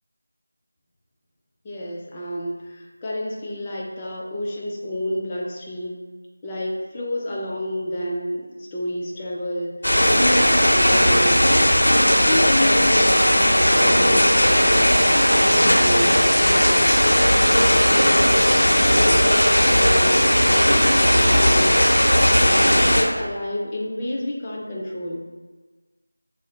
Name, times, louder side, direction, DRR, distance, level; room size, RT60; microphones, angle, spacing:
voice 1, 1.6-6.0 6.4-9.8 10.1-11.4 12.2-14.9 15.3-16.2 16.5-18.6 18.9-21.8 22.4-25.2, left 1 dB, 15° left, -4 dB, 0.3 m, -29 dB
sound 1, 9.8-23.0, equal, 90° left, 0.9 m, -17 dB
3.9 x 2.4 x 3.0 m, 1.3 s
figure-of-eight pair, 175°, 0 cm